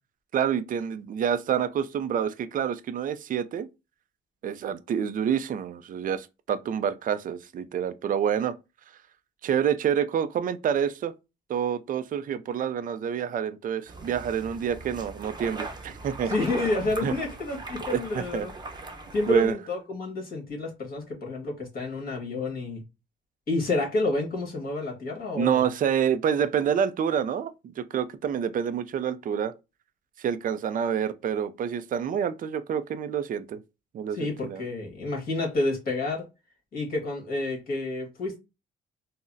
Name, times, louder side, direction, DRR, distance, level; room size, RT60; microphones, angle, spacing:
voice 1, 0.3-3.7 4.4-8.5 9.4-11.1 11.5-16.3 17.0-17.1 17.9-18.5 19.3-19.6 25.4-27.5 27.8-29.5 30.2-33.6 33.9-34.6, right 8 dB, 45° right, 0.4 m, -27 dB
sound 1, 13.9-19.5, right 3 dB, 20° right, 0.7 m, -39 dB
voice 2, 16.2-18.5 19.1-22.8 23.5-25.7 34.1-36.2 36.7-38.4, left 2 dB, 50° left, 1.5 m, -29 dB
3.8 x 2.0 x 2.6 m
cardioid pair, 90°, 20 cm